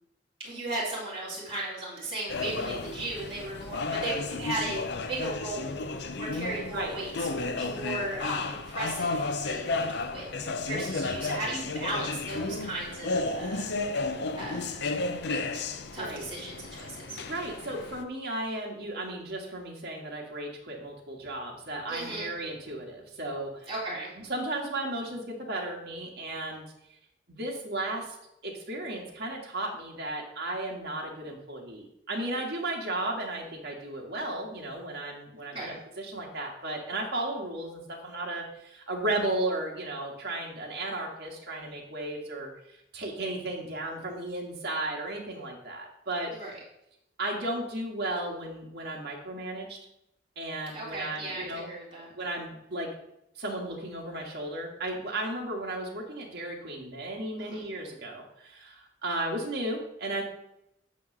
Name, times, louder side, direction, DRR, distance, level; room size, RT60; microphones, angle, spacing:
voice 1, 0.4-13.7 14.3-14.8 15.5-15.6 15.9-17.2 21.9-22.3 23.7-24.1 35.5-35.8 46.3-46.5 50.7-52.1 57.4-57.6, right 2 dB, 35° right, -7 dB, 3.0 m, -36 dB
sound 1, 2.3-18.0, left 3 dB, 65° left, 0.6 m, -33 dB
voice 2, 16.0-16.3 17.3-23.7 24.3-26.6 27.3-28.2 28.4-42.5 42.9-46.3 47.2-49.8 50.3-51.7 52.2-52.9 53.4-60.2, right 1 dB, 65° right, 0 dB, 1.7 m, -34 dB
9.2 x 3.2 x 6.4 m, 0.82 s
head